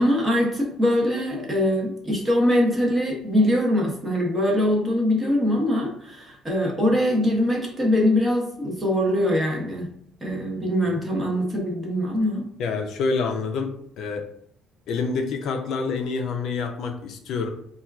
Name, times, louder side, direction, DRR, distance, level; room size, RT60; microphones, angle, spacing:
voice 1, 0.0-9.9 10.2-12.5, left 1 dB, 15° right, 0 dB, 0.6 m, -22 dB
voice 2, 12.6-14.3 14.9-17.5, left 4 dB, 55° left, 4 dB, 0.4 m, -27 dB
4.2 x 2.3 x 2.3 m, 0.67 s
cardioid pair, 165°, 0 cm